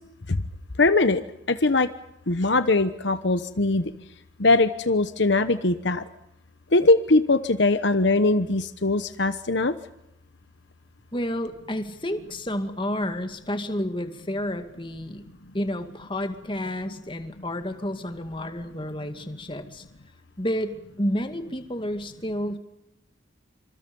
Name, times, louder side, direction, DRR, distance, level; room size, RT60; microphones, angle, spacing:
voice 1, 0.8-1.2 1.5-1.9 2.3-3.9 4.4-6.0 6.7-9.7, left 2 dB, 60° left, 11 dB, 1.1 m, -21 dB
voice 2, 11.1-15.2 15.5-19.8 20.4-22.6, equal, 25° left, 7 dB, 2.2 m, -30 dB
28.0 x 26.5 x 5.5 m, 0.83 s
head